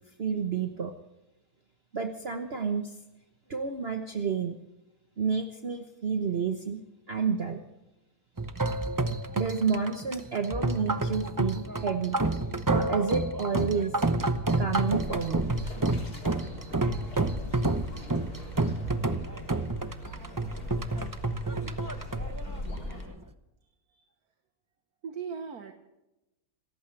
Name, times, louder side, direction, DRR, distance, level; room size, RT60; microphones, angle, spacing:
voice 1, 0.2-0.9 1.9-3.0 3.5-4.6 5.2-6.8 7.1-7.6 9.3-12.2 12.7-14.0 14.6-15.4, right 6 dB, 45° right, 5 dB, 1.3 m, -30 dB
sound 1, 8.4-23.2, right 2 dB, 20° right, 0.6 m, -29 dB
sound 2, 14.7-23.1, left 1 dB, 80° left, 4.4 m, -40 dB
voice 2, 23.6-24.1 25.0-25.7, right 6 dB, 75° right, 6 dB, 1.7 m, -39 dB
28.0 x 14.5 x 3.3 m, 0.95 s
omnidirectional pair, 1.6 m